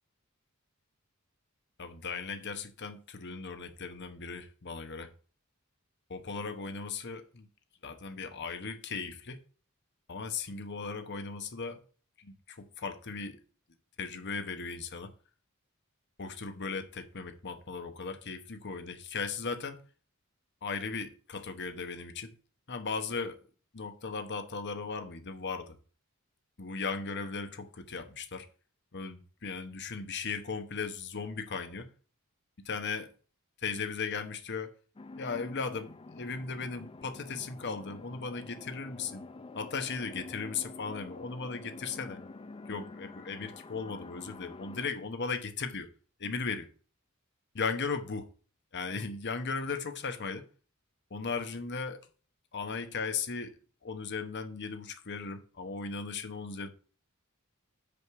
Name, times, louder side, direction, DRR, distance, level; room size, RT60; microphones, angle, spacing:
voice 1, 1.8-5.1 6.1-7.5 7.8-9.4 10.1-11.8 12.2-13.4 14.0-15.1 16.2-19.8 20.6-22.3 22.7-23.4 23.7-25.8 26.6-28.5 28.9-31.9 32.6-33.1 33.6-34.7 35.2-39.2 39.5-42.2 42.7-45.9 46.2-46.7 47.5-48.3 48.7-50.4 51.1-52.0 52.5-53.5 53.8-56.7, left 4 dB, 55° left, 1.0 m, -37 dB
sound 1, 35.0-44.9, left 3 dB, 25° left, 0.5 m, -47 dB
6.4 x 5.2 x 6.8 m
head